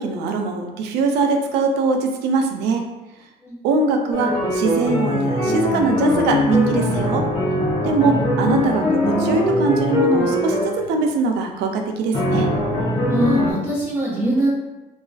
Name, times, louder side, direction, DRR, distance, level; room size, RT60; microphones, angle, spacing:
voice 1, 0.0-2.9 3.6-7.2 7.8-12.5, right 4 dB, 85° right, 4 dB, 0.4 m, -21 dB
sound 1, 4.1-10.8 12.1-13.5, left 1 dB, 35° left, 0.7 m, -21 dB
voice 2, 13.1-14.5, right 1 dB, 5° left, -15 dB, 1.0 m, -22 dB
2.4 x 2.3 x 2.3 m, 1.0 s
cardioid pair, 110°, 17 cm